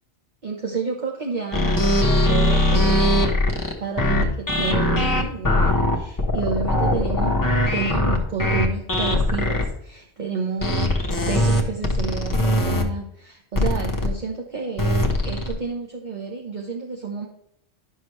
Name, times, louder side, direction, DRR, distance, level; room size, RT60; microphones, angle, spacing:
voice 1, 0.4-17.3, right 5 dB, 40° right, 0 dB, 1.1 m, -30 dB
sound 1, 1.5-9.7 10.6-12.8 13.5-14.1 14.8-15.5, left 1 dB, 20° left, 1.1 m, -20 dB
11.0 x 6.2 x 3.2 m, 0.74 s
omnidirectional pair, 1.2 m